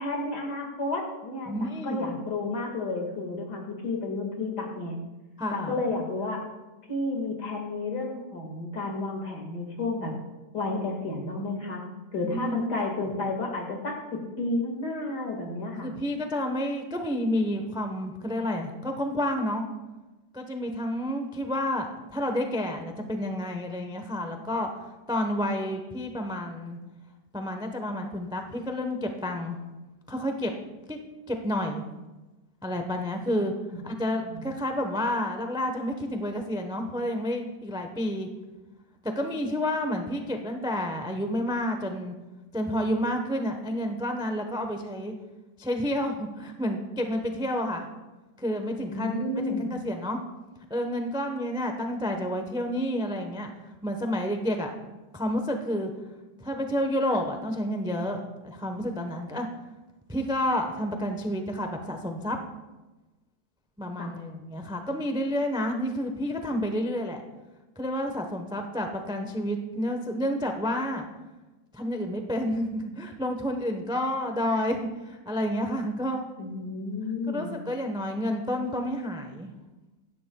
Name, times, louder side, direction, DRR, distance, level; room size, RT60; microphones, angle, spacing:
voice 1, 0.0-5.0 5.5-6.4 6.9-10.1 10.5-11.8 12.1-15.9 34.2-34.4 48.9-49.7 64.0-64.1 76.4-77.5, left 2 dB, 65° left, 1 dB, 2.4 m, -31 dB
voice 2, 1.5-2.2 5.4-5.8 12.3-12.7 15.8-19.6 20.3-26.8 27.3-29.6 30.1-30.5 30.9-31.0 31.3-31.8 32.6-33.5 33.8-38.3 39.0-42.1 42.5-45.1 45.6-47.9 48.4-50.2 50.7-53.5 53.8-54.7 55.1-55.9 56.4-59.5 60.1-62.4 63.8-67.2 67.8-71.1 71.7-76.3 77.3-79.5, equal, 5° right, 5 dB, 0.4 m, -30 dB
16.5 x 12.0 x 2.3 m, 1.1 s
omnidirectional pair, 1.9 m